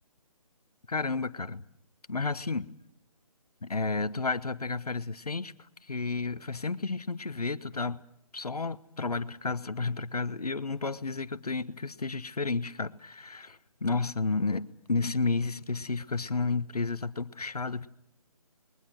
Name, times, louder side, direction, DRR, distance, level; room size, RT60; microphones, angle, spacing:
voice 1, 0.9-1.6 2.1-2.7 3.6-5.5 5.9-8.0 8.3-17.9, left 3 dB, 80° left, 1.2 m, -31 dB
28.5 x 22.0 x 6.3 m
figure-of-eight pair, 145°, 19 cm